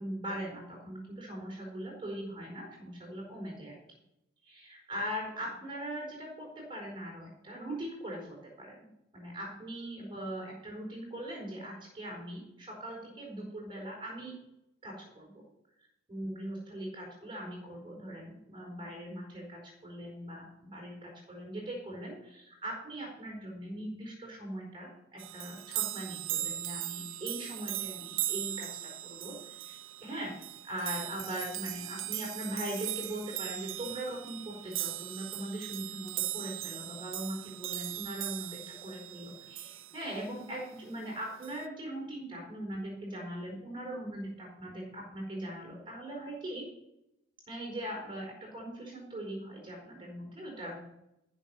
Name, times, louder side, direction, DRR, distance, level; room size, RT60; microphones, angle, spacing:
voice 1, 0.0-3.8 4.4-14.4 14.8-15.4 16.1-28.7 29.0-30.3 30.6-46.7 47.5-50.9, right 1 dB, 25° right, -2 dB, 4.5 m, -40 dB
sound 1, 25.2-40.2 41.4-41.6, right 14 dB, 70° right, 0.6 m, -39 dB
13.5 x 5.5 x 7.2 m, 0.85 s
head